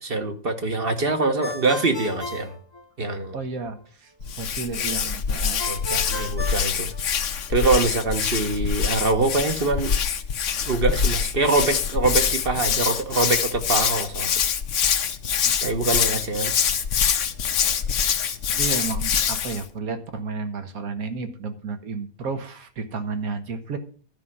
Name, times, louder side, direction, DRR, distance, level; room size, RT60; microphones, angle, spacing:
voice 1, 0.0-2.5 3.0-3.4 4.8-4.9 5.7-6.9 7.5-10.0 10.7-14.3 15.6-16.5, right 3 dB, 45° right, 1.2 m, -24 dB
Ringtone, 1.4-3.4 5.6-7.5, left 2 dB, 20° left, 1.0 m, -35 dB
voice 2, 3.3-5.6 6.0-6.2 15.4-15.6 18.6-23.8, right 4 dB, 75° right, 1.7 m, -32 dB
Hands, 4.2-19.6, left 7 dB, 60° left, 1.1 m, -25 dB
12.5 x 5.5 x 7.2 m
omnidirectional pair, 1.5 m